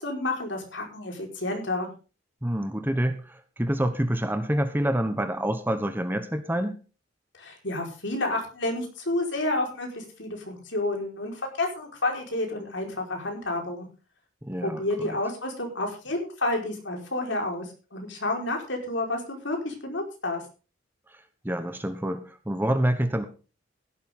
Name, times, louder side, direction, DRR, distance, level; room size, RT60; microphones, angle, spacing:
voice 1, 0.0-1.9 7.4-13.9 14.6-20.4, left 2 dB, 65° left, 2 dB, 4.9 m, -30 dB
voice 2, 2.4-6.8 14.4-15.2 21.1-23.3, right 1 dB, 10° right, 9 dB, 1.1 m, -27 dB
15.5 x 12.0 x 3.8 m, 0.34 s
head